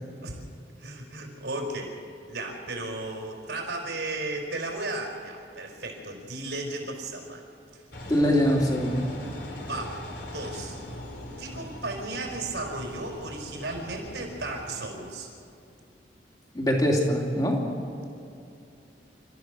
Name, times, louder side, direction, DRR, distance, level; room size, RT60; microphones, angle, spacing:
voice 1, 0.8-1.9 2.3-7.4 8.2-8.3 9.6-10.8 11.4-15.3, right 2 dB, 85° right, 1 dB, 4.7 m, -35 dB
Engine, 7.9-14.9, left 1 dB, 70° left, 3.2 m, -40 dB
voice 2, 8.1-9.1 16.5-17.6, equal, 20° left, -1 dB, 3.0 m, -23 dB
29.5 x 14.0 x 6.5 m, 2.6 s
head